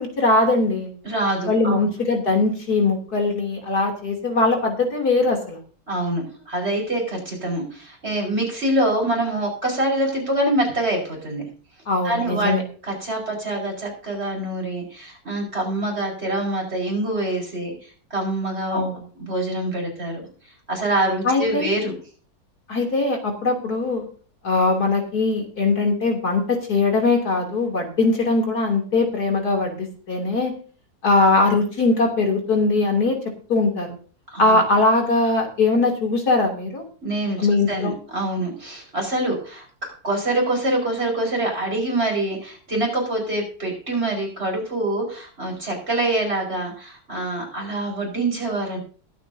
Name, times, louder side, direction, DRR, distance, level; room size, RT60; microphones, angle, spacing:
voice 1, 0.0-0.9 1.5-5.6 11.9-12.6 18.7-19.0 21.2-21.7 22.7-24.0 24.4-30.5 31.0-33.9 34.4-36.8 37.4-37.9, left 3 dB, 65° left, 2 dB, 3.5 m, -21 dB
voice 2, 1.0-1.8 5.9-11.4 12.0-12.5 12.8-17.7 18.1-18.8 19.2-20.3 20.7-21.9 34.3-34.6 37.0-48.8, right 1 dB, 35° right, 0 dB, 5.4 m, -25 dB
22.0 x 8.6 x 2.7 m, 0.39 s
omnidirectional pair, 1.8 m